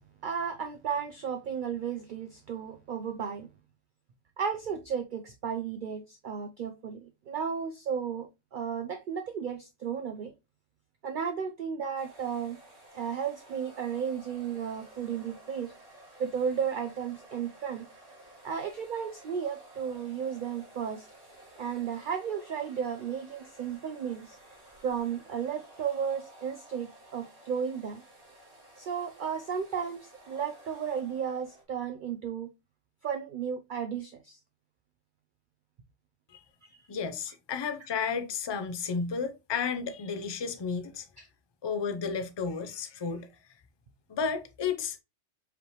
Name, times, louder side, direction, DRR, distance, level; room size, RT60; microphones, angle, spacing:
voice 1, 0.2-3.5 4.4-10.3 11.0-12.6 12.9-15.7 16.2-17.9 18.4-21.1 21.6-24.4 24.8-28.0 28.8-32.5 33.0-34.4 36.7-36.8 41.2-41.3, right 7 dB, 60° right, 0.5 m, -34 dB
sound 1, 12.0-31.6, right 1 dB, 30° right, 1.6 m, -54 dB
voice 2, 36.9-41.1 41.6-43.3 44.1-45.0, left 5 dB, 40° left, 0.4 m, -32 dB
4.9 x 3.2 x 3.0 m
omnidirectional pair, 1.3 m